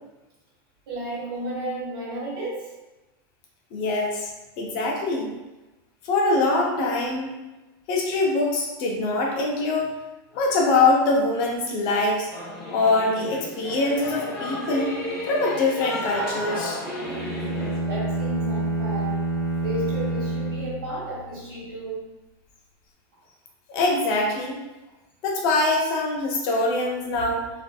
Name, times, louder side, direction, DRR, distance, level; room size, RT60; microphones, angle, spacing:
voice 1, 0.9-2.7 17.9-19.1 19.6-22.1, right 1 dB, 70° right, -6 dB, 1.4 m, -33 dB
voice 2, 3.7-4.3 4.6-5.3 6.0-7.3 7.9-9.9 10.3-12.3 12.7-14.9 15.3-16.8 23.7-24.6 25.2-27.5, left 2 dB, 40° left, -1 dB, 0.5 m, -23 dB
Singing / Musical instrument, 12.3-17.8, left 1 dB, 5° left, 0.8 m, -33 dB
sound 1, 17.0-21.4, right 1 dB, 50° right, 0.6 m, -28 dB
2.5 x 2.5 x 2.2 m, 1.1 s
supercardioid pair, 150°, 12 cm